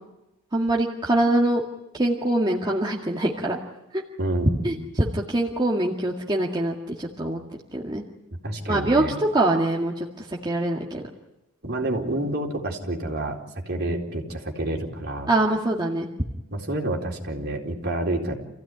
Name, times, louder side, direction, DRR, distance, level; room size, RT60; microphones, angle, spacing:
voice 1, 0.5-1.6 1.9-3.6 3.9-4.0 4.6-7.4 7.7-8.0 8.7-11.0 15.3-16.1, right 1 dB, 20° right, -2 dB, 2.0 m, -24 dB
voice 2, 4.2-4.7 8.4-9.1 11.6-15.3 16.5-18.4, right 1 dB, 50° right, 0 dB, 4.1 m, -28 dB
28.5 x 16.0 x 9.8 m, 0.95 s
head